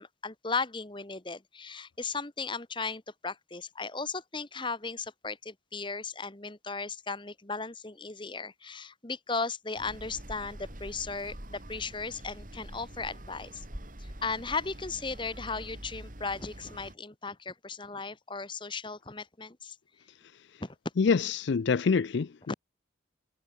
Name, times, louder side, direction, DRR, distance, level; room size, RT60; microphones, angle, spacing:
voice 1, 0.0-13.6 14.0-19.8 20.6-20.7 22.5-22.6, left 4 dB, 25° left, 1.4 m, -36 dB
sound 1, 9.8-16.9, right 1 dB, 45° right, 3.6 m, -45 dB
voice 2, 21.0-22.5, left 5 dB, 65° left, 0.4 m, -26 dB
head